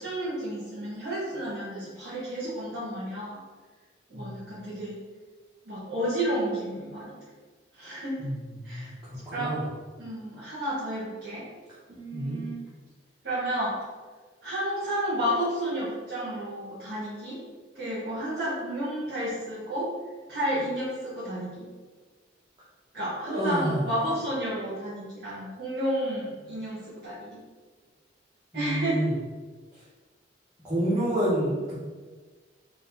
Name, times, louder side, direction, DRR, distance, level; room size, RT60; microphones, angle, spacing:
voice 1, 0.0-3.4 4.1-5.0 5.6-7.2 7.8-8.3 8.6-8.9 9.3-9.6 10.0-11.5 11.9-12.6 13.2-13.8 14.4-17.4 17.7-19.9 20.3-21.7 22.9-27.4 28.5-29.0, right 1 dB, 60° right, -11 dB, 1.3 m, -31 dB
voice 2, 8.2-9.7 12.1-12.4 23.3-23.9 28.5-29.2 30.6-31.8, right 1 dB, 20° right, -11 dB, 0.8 m, -29 dB
3.9 x 2.3 x 4.0 m, 1.4 s
head